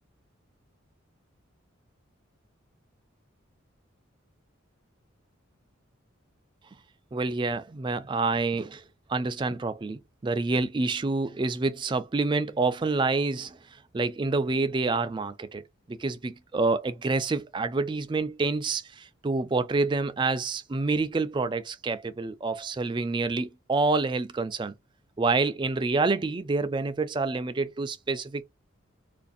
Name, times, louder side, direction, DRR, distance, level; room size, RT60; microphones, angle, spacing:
voice 1, 7.1-8.8 9.1-24.7 25.2-28.5, right 3 dB, 25° right, 0.3 m, -28 dB
2.6 x 2.5 x 3.9 m
head